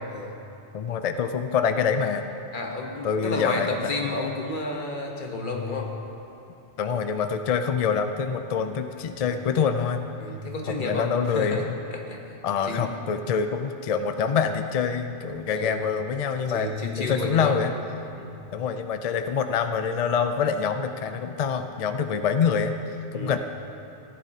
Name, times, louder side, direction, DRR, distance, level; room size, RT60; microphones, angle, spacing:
voice 1, 0.7-2.3 3.0-4.0 6.8-10.0 10.7-11.7 12.4-16.7 17.0-17.7 18.5-22.8 23.1-23.4, left 6 dB, 65° left, 8 dB, 0.3 m, -26 dB
voice 2, 2.5-5.9 9.2-9.4 10.2-12.9 15.5-15.8 16.5-17.6 18.1-18.5 23.1-23.4, left 3 dB, 50° left, 1 dB, 1.2 m, -31 dB
15.5 x 10.5 x 2.8 m, 2.7 s
omnidirectional pair, 1.1 m